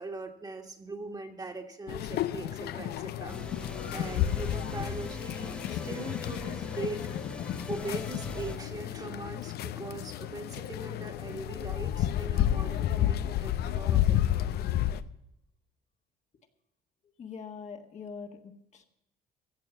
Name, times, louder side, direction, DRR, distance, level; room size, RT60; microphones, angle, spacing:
voice 1, 0.0-3.4 3.9-7.1 7.7-14.2, right 2 dB, 25° right, 4 dB, 1.8 m, -40 dB
sound 1, 1.9-15.0, left 12 dB, 70° left, 0.7 m, -31 dB
sound 2, 3.3-8.6, left 1 dB, 5° left, 0.7 m, -42 dB
voice 2, 17.2-18.9, left 5 dB, 45° left, 4 dB, 1.6 m, -43 dB
15.5 x 7.1 x 7.3 m, 0.84 s
cardioid pair, 110°, 17 cm